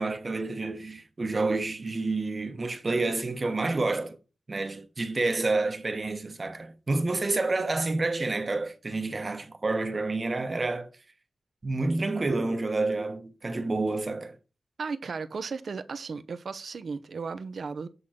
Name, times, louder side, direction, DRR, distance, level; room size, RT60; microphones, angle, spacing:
voice 1, 0.0-4.2 4.5-10.9 11.6-14.4, right 3 dB, 40° right, 1.0 m, -29 dB
voice 2, 14.8-17.9, right 5 dB, 75° right, 0.7 m, -35 dB
8.1 x 3.7 x 5.7 m
wide cardioid pair, 105°, 0 cm